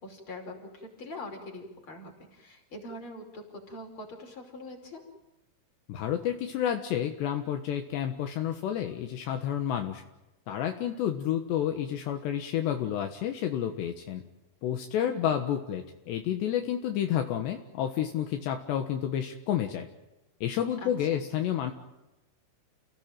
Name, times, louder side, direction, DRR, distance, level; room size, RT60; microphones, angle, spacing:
voice 1, 0.0-5.0 15.0-15.3 20.8-21.2, left 1 dB, 25° left, 3 dB, 5.8 m, -43 dB
voice 2, 5.9-10.0 10.5-14.2 14.6-19.9 20.4-21.7, left 10 dB, 75° left, 5 dB, 3.4 m, -30 dB
30.0 x 18.0 x 9.1 m, 0.99 s
omnidirectional pair, 5.3 m